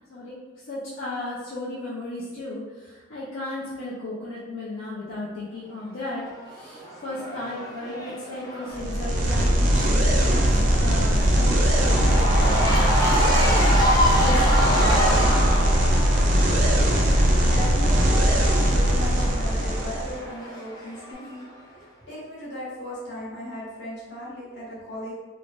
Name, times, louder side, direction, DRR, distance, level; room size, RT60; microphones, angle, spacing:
voice 1, 0.7-13.9 14.2-15.2, left 2 dB, 80° left, -7 dB, 0.5 m, -35 dB
Cheering / Crowd, 6.1-21.4, equal, 20° left, 0.5 m, -28 dB
sound 1, 8.7-20.2, equal, 40° right, 0.4 m, -20 dB
voice 2, 17.1-18.4 18.7-25.1, left 1 dB, 55° left, -9 dB, 1.3 m, -37 dB
3.3 x 2.1 x 2.5 m, 1.3 s
head